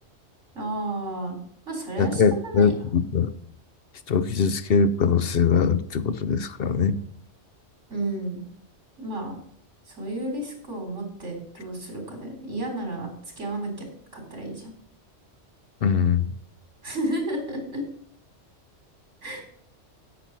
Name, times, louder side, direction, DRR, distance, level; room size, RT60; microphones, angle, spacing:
voice 1, 0.5-1.4 1.7-2.7 7.9-8.4 9.0-9.4 9.9-13.1 13.4-14.7 16.8-17.8 19.2-19.4, right 1 dB, 80° right, 2 dB, 4.1 m, -32 dB
voice 2, 2.0-3.4 4.1-7.0 15.8-16.3, left 6 dB, 60° left, 13 dB, 0.8 m, -22 dB
9.9 x 8.7 x 5.8 m, 0.63 s
omnidirectional pair, 1.2 m